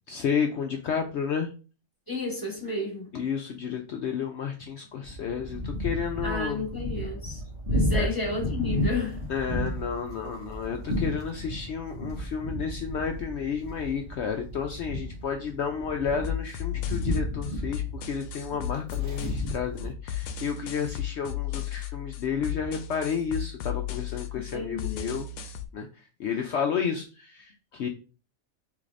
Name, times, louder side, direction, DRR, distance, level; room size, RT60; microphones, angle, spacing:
voice 1, 0.1-1.5 3.1-6.6 7.9-8.1 9.3-25.3 25.7-27.9, left 7 dB, 65° left, 0.7 m, -31 dB
voice 2, 2.1-3.1 6.2-7.4 7.7-9.2 24.3-25.2, left 2 dB, 15° left, 1.4 m, -32 dB
sound 1, 5.0-19.9, equal, 30° right, 2.0 m, -33 dB
sound 2, 16.2-25.7, left 10 dB, 80° left, 1.0 m, -35 dB
4.9 x 3.3 x 2.5 m
omnidirectional pair, 1.5 m